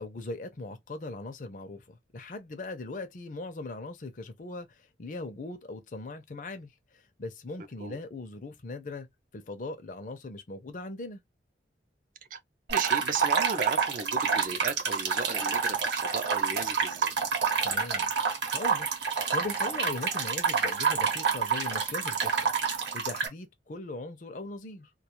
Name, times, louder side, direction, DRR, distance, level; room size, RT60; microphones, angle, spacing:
voice 1, 0.0-9.1 9.3-11.2 17.6-18.1 18.5-24.9, left 2 dB, 45° left, 0.5 m, -40 dB
voice 2, 12.7-17.1, right 4 dB, 45° right, 0.5 m, -35 dB
sound 1, 12.7-23.3, right 6 dB, 75° right, 0.9 m, -28 dB
2.3 x 2.3 x 2.9 m
head